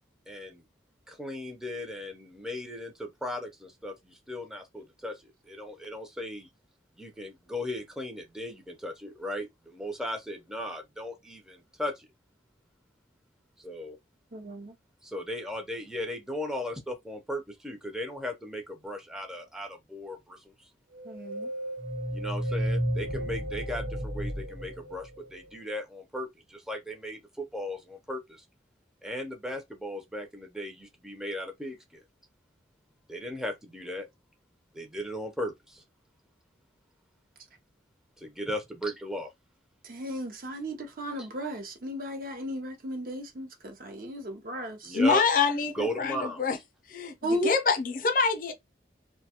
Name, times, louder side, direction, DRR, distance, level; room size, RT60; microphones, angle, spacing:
voice 1, 0.3-0.6 1.1-6.5 7.0-12.1 13.6-14.0 15.0-20.5 22.1-27.2 27.5-28.4 29.0-32.0 33.1-34.1 34.7-35.8 38.2-39.3 44.8-45.2 45.7-46.5, left 1 dB, 5° right, 0.5 m, -37 dB
voice 2, 14.3-14.8 21.0-21.5 39.8-45.0 47.2-47.5, equal, 50° right, 0.7 m, -35 dB
sound 1, 20.9-25.5, equal, 75° right, 1.0 m, -33 dB
voice 3, 44.9-46.6 46.9-48.5, left 4 dB, 50° left, 0.5 m, -26 dB
2.6 x 2.2 x 2.8 m
head